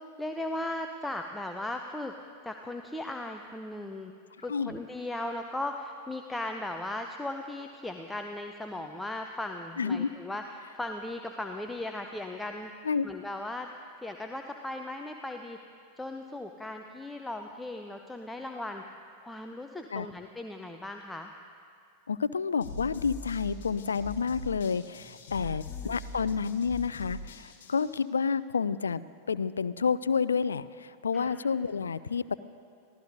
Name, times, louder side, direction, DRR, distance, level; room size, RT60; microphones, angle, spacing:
voice 1, 0.0-2.1 2.4-4.1 4.4-12.7 13.0-13.7 14.0-15.6 16.0-18.8 19.2-21.3 25.4-25.9 31.1-31.4, left 1 dB, 5° left, 4 dB, 0.6 m, -37 dB
voice 2, 9.8-10.1 12.8-13.1 19.9-20.1 22.1-29.0 29.3-32.3, left 5 dB, 70° left, 17 dB, 0.3 m, -29 dB
sound 1, 22.6-27.9, left 2 dB, 55° left, 1.6 m, -42 dB
23.5 x 16.0 x 2.7 m, 2.3 s
figure-of-eight pair, 90°, 0 cm